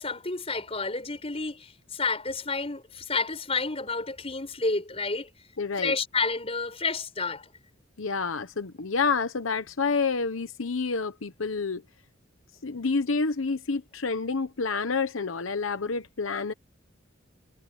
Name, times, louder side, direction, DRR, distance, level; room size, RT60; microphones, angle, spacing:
voice 1, 0.0-5.3 5.8-7.5, left 3 dB, 30° left, 5.4 m, -30 dB
voice 2, 5.6-5.9 8.0-11.8 12.6-16.5, left 4 dB, 90° left, 1.0 m, -28 dB
head